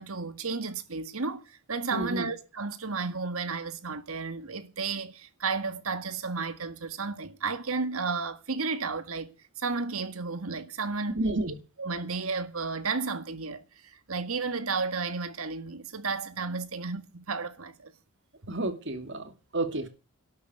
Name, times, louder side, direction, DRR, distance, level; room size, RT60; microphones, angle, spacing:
voice 1, 0.0-9.3 9.6-11.2 11.8-17.9 18.4-18.5, right 4 dB, 75° right, 1.8 m, -33 dB
voice 2, 1.9-2.3 11.1-11.6 18.5-19.9, right 2 dB, 55° right, 2.6 m, -31 dB
12.5 x 8.4 x 9.3 m
head